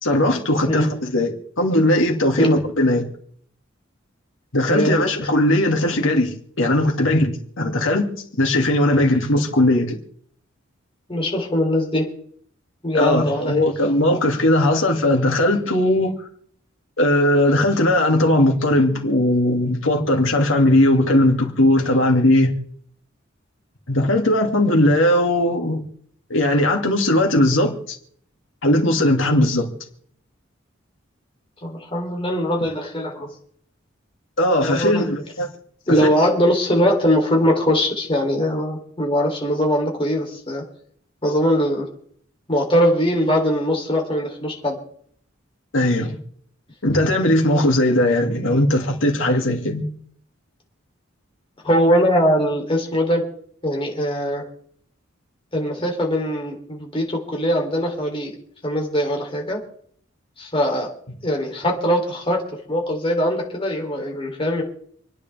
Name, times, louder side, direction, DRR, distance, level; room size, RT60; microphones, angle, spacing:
voice 1, 0.0-3.1 4.5-8.1 8.4-10.0 12.9-16.2 17.0-22.5 23.9-25.8 26.3-28.0 28.6-29.7 34.4-35.5 45.7-46.2 46.8-49.9, left 1 dB, 75° left, 2.6 m, -18 dB
voice 2, 4.7-5.1 11.1-12.1 12.8-13.6 31.6-33.3 34.6-35.1 35.9-40.6 41.2-41.9 42.5-44.8 51.6-53.2 53.6-54.4 55.5-58.3 58.6-59.6 60.4-60.9 61.2-64.6, equal, 25° left, 3.4 m, -21 dB
28.0 x 10.0 x 3.5 m
head